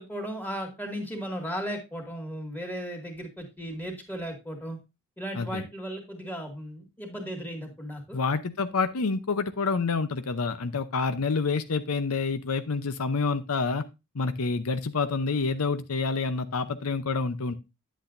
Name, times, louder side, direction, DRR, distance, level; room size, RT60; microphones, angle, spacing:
voice 1, 0.0-4.8 5.2-8.2, equal, 10° left, 2 dB, 2.2 m, -36 dB
voice 2, 5.3-5.6 8.1-13.9 14.1-17.6, left 4 dB, 75° left, 10 dB, 0.7 m, -28 dB
10.0 x 8.3 x 2.6 m, 0.25 s
head